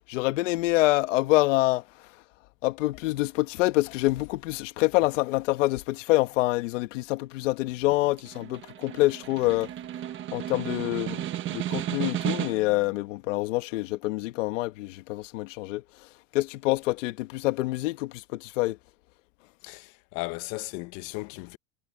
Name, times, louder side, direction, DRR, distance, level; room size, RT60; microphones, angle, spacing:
voice 1, 0.1-1.8 2.6-9.7 10.3-16.1 16.3-18.8, left 19 dB, 80° left, 1.5 m, -26 dB
Snare drum, 7.9-12.8, right 12 dB, 30° right, 1.4 m, -33 dB
voice 2, 19.6-21.6, left 22 dB, 50° left, 1.1 m, -36 dB
supercardioid pair, 150°, 37 cm